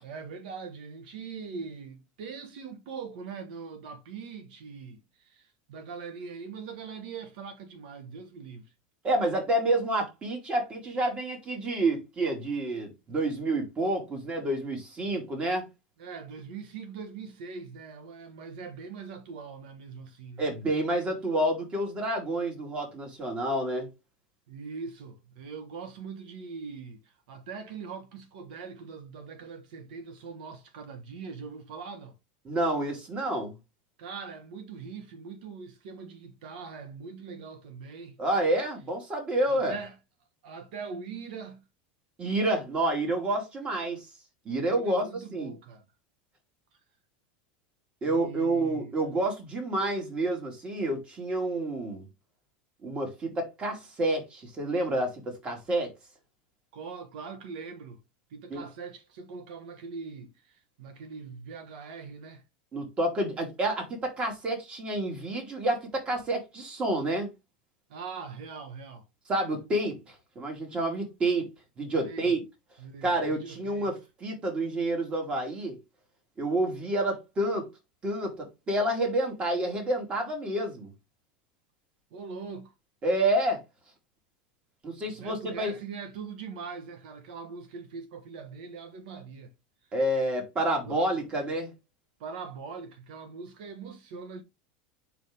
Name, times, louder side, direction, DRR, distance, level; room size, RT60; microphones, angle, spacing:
voice 1, 0.0-8.7 16.0-20.6 24.5-32.1 34.0-38.2 39.5-40.0 40.4-41.6 44.7-45.8 48.1-49.0 56.7-58.0 58.3-62.4 67.9-69.0 72.0-72.4 72.8-73.9 82.1-82.7 85.1-89.5 90.8-91.1 91.4-91.5 92.2-94.4, right 5 dB, 75° right, 1.4 m, -42 dB
voice 2, 9.0-15.7 20.4-23.9 32.5-33.5 38.2-39.8 42.2-44.1 44.4-45.0 45.3-45.5 48.0-52.0 52.8-55.9 58.5-58.6 62.7-67.3 69.3-71.5 71.8-72.4 73.0-75.8 76.4-77.7 78.0-80.9 83.0-83.6 84.8-85.7 89.9-91.7, right 1 dB, 25° right, 2.5 m, -29 dB
5.0 x 5.0 x 3.8 m
supercardioid pair, 140°, 5 cm